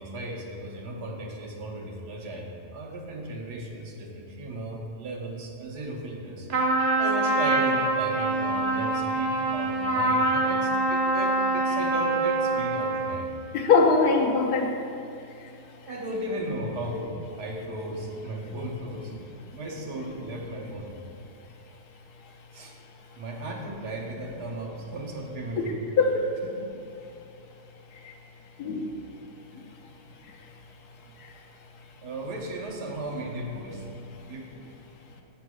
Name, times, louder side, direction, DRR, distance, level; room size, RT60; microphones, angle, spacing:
voice 1, 0.0-6.5 7.0-13.3 15.9-19.1 19.5-21.0 22.5-22.7 23.2-25.8 26.4-26.6 31.1-31.2 31.9-34.5, right 1 dB, 75° right, 0 dB, 1.5 m, -35 dB
Trumpet, 6.5-13.2, right 2 dB, 55° right, 0.8 m, -25 dB
voice 2, 13.5-14.7 25.6-25.7 26.0-26.3 28.0-28.1 28.6-28.9 29.5-29.6, left 4 dB, 75° left, 1 dB, 1.2 m, -22 dB
7.0 x 3.9 x 6.1 m, 2.6 s
omnidirectional pair, 1.7 m